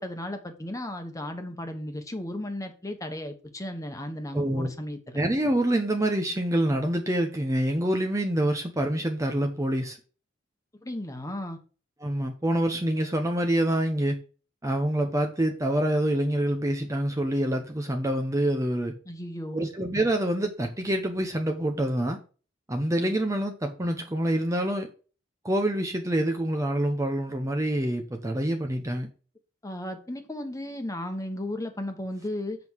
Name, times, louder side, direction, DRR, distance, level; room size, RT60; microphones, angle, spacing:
voice 1, 0.0-5.2 10.8-11.6 19.1-19.7 29.6-32.6, left 1 dB, 20° left, 1.3 m, -35 dB
voice 2, 4.3-4.7 5.1-10.0 12.0-14.2 14.6-18.9 19.5-22.2 22.7-24.9 25.4-29.1, right 1 dB, 15° right, 0.9 m, -26 dB
7.8 x 5.5 x 4.6 m
head